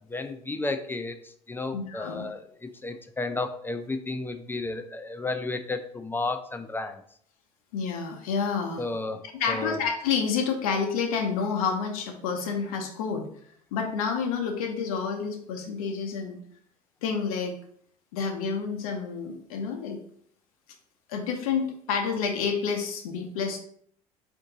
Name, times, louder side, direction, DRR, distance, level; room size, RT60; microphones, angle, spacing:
voice 1, 0.1-7.0 8.8-9.2 9.5-9.8, left 3 dB, 10° left, 8 dB, 0.4 m, -32 dB
voice 2, 1.7-2.2 7.7-8.9 9.4-13.3 13.7-16.4 17.0-17.6 18.1-20.0 21.1-23.6, left 6 dB, 75° left, 3 dB, 0.7 m, -29 dB
4.4 x 2.6 x 3.8 m, 0.62 s
hypercardioid pair, 75°, 18 cm